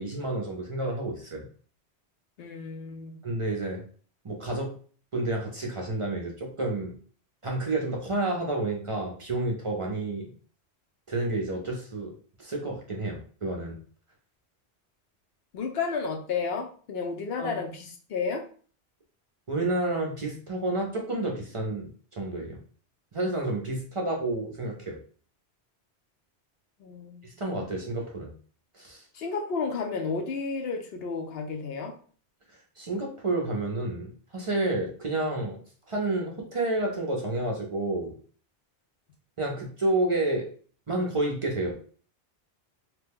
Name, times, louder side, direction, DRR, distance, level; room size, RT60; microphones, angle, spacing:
voice 1, 0.0-1.5 3.2-3.8 4.2-4.7 5.1-6.9 7.4-10.3 11.1-12.1 12.4-13.8 17.4-17.6 19.5-22.6 23.1-25.0 27.2-28.3 28.7-29.0 32.8-35.6 35.9-38.1 39.4-40.4 40.9-41.7, right 2 dB, 40° right, -1 dB, 0.5 m, -30 dB
voice 2, 2.4-3.2 15.5-18.4 26.8-27.3 29.1-31.9, left 5 dB, 70° left, 3 dB, 0.7 m, -32 dB
2.9 x 2.1 x 3.4 m, 0.43 s
omnidirectional pair, 1.1 m